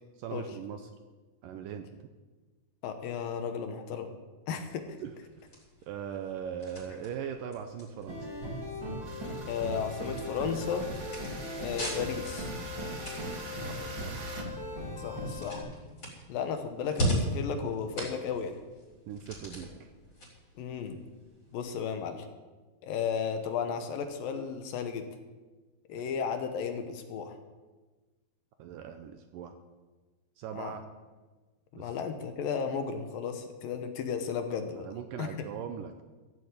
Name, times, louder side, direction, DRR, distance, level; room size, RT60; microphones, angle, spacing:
voice 1, 0.2-0.8 1.4-2.1 4.5-4.6 5.0-5.1 5.9-8.3 13.6-14.3 19.1-19.9 25.9-26.0 28.6-29.6 30.4-30.8 31.7-31.9 34.8-36.0, right 8 dB, 80° right, 7 dB, 2.1 m, -40 dB
voice 2, 2.8-4.1 4.5-5.0 9.5-10.9 11.6-12.5 15.0-15.7 16.3-18.6 20.6-21.0 21.5-22.3 22.8-25.1 25.9-27.4 30.6-30.7 31.7-34.9 35.2-35.4, left 6 dB, 70° left, 7 dB, 2.6 m, -34 dB
sound 1, 4.6-21.6, equal, 40° left, 6.6 m, -40 dB
sound 2, 8.1-15.6, left 1 dB, 35° right, 2.9 m, -38 dB
sound 3, 9.0-14.4, right 3 dB, 60° right, 1.0 m, -45 dB
15.0 x 7.9 x 8.3 m, 1.3 s
omnidirectional pair, 4.5 m